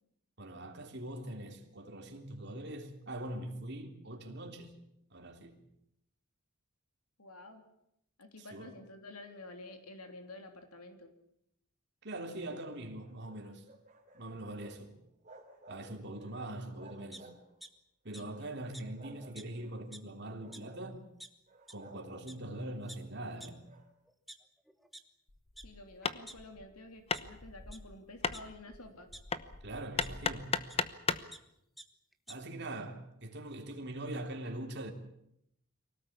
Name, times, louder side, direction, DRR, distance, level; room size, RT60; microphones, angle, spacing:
voice 1, 0.4-4.8 5.1-5.6 8.4-8.7 12.0-13.7 14.1-14.9 15.7-17.3 18.1-21.0 21.7-23.7 29.6-30.6 32.3-34.9, right 1 dB, 50° right, 3.3 m, -42 dB
voice 2, 7.2-7.6 8.2-11.1 18.2-18.5 25.6-29.1, left 2 dB, 85° left, 3.2 m, -50 dB
sound 1, 12.8-14.8 15.1-15.8 16.1-17.6 18.1-19.8 20.3-20.9 21.5-23.9, right 2 dB, 35° right, 3.9 m, -57 dB
sound 2, 17.1-17.7 18.1-18.2 18.7-18.8 19.4-19.5 19.8-20.1 20.5-20.6 21.2-21.3 21.7-21.8 22.3-22.4 22.9-23.0 23.4-23.5 24.1-25.0 25.6-25.7 26.0-26.7 27.1-27.2 27.7-27.8 28.3-29.2 30.0-30.1 30.7-30.8 31.1-31.4 31.8-31.9 32.1-32.4, equal, ahead, 1.3 m, -50 dB
Hammer, 25.3-31.3, left 5 dB, 25° left, 1.0 m, -37 dB
24.5 x 18.0 x 8.7 m
head